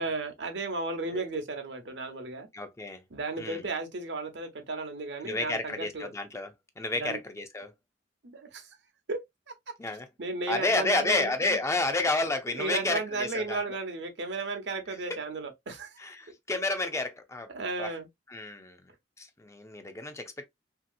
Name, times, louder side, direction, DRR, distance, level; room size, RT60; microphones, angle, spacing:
voice 1, 0.0-2.5 3.1-6.1 6.9-7.2 8.2-8.7 9.1-9.2 10.2-11.6 12.5-16.0 17.5-18.1, right 3 dB, 75° right, 0.8 m, -34 dB
voice 2, 2.5-3.0 3.4-3.7 5.2-7.7 9.8-10.1 10.5-13.8 15.1-15.2 16.0-17.5 17.8-17.9 18.3-18.9 19.2-20.4, left 2 dB, 15° left, 0.4 m, -31 dB
2.9 x 2.8 x 2.4 m
head